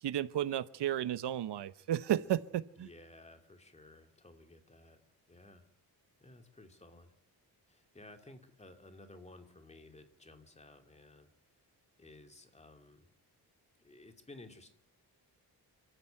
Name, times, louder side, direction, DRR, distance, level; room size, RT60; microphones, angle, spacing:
voice 1, 0.0-2.9, right 11 dB, 85° right, 16 dB, 1.0 m, -33 dB
voice 2, 2.8-5.0 5.3-5.7 6.2-7.1 7.7-11.3 12.0-13.1 13.8-14.7, left 2 dB, 15° left, 6 dB, 2.6 m, -55 dB
28.5 x 14.5 x 9.1 m, 0.72 s
wide cardioid pair, 150°, 40 cm